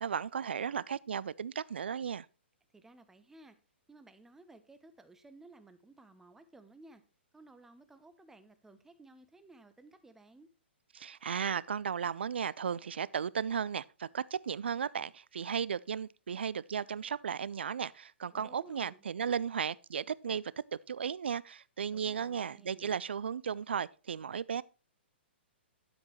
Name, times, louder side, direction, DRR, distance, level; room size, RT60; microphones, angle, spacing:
voice 1, 0.0-2.3 10.9-20.5 20.9-24.6, right 7 dB, 65° right, 0.4 m, -35 dB
voice 2, 2.7-3.6 3.9-7.0 7.3-10.5 18.3-19.1 21.9-23.0, right 2 dB, 5° right, 0.8 m, -57 dB
10.0 x 7.8 x 3.1 m
figure-of-eight pair, 115°, 6 cm